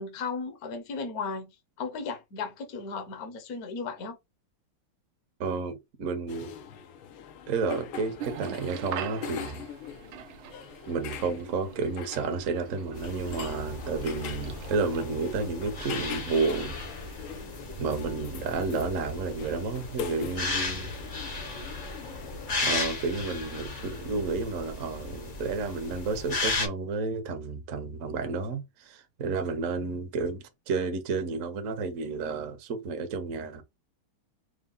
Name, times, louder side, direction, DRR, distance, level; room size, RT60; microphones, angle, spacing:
voice 1, 0.0-1.5 1.8-4.2, left 4 dB, 55° left, 1.2 m, -35 dB
voice 2, 5.4-6.5 7.5-9.6 10.9-16.8 17.2-17.4 17.8-20.9 22.6-33.6, right 4 dB, 55° right, 1.0 m, -31 dB
sound 1, 6.3-22.5, left 8 dB, 80° left, 1.6 m, -43 dB
sound 2, 8.2-15.0, right 10 dB, 80° right, 1.5 m, -43 dB
sound 3, 12.9-26.7, left 3 dB, 35° left, 0.7 m, -35 dB
4.8 x 2.3 x 3.7 m
omnidirectional pair, 2.3 m